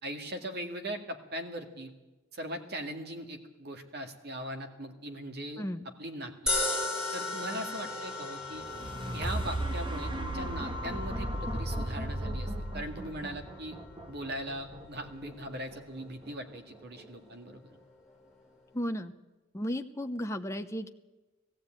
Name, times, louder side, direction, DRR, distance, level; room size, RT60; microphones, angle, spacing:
voice 1, 0.0-1.9 2.3-5.7 6.0-6.3 7.1-8.6 9.1-13.8 14.1-17.7, right 1 dB, 55° right, 5 dB, 2.2 m, -40 dB
sound 1, 6.5-18.8, left 2 dB, 5° right, 4.1 m, -39 dB
sound 2, 8.4-16.5 17.0-17.1, right 1 dB, 25° right, 1.4 m, -36 dB
voice 2, 18.7-19.1 19.5-20.9, equal, 15° left, 5 dB, 0.8 m, -34 dB
19.5 x 15.5 x 9.0 m, 1.1 s
head